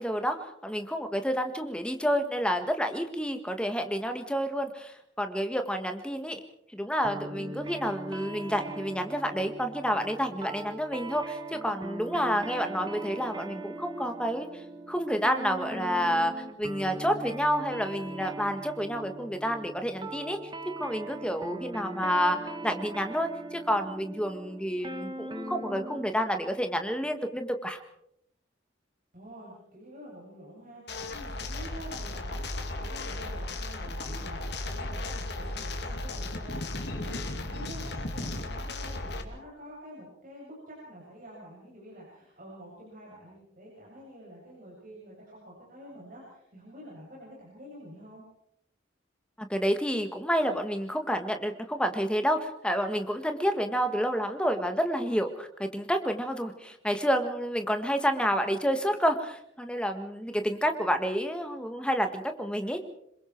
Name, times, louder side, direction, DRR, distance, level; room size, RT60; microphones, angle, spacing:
voice 1, 0.0-6.4 6.7-20.5 20.8-27.8 49.4-62.8, equal, 5° left, 6 dB, 1.6 m, -29 dB
sound 1, 7.0-26.2, right 1 dB, 25° right, 1.6 m, -40 dB
voice 2, 29.1-32.4 32.8-48.2, equal, 45° right, -5 dB, 7.4 m, -48 dB
sound 2, 30.9-39.2, left 2 dB, 60° left, 2.4 m, -35 dB
26.5 x 22.5 x 4.6 m, 0.75 s
head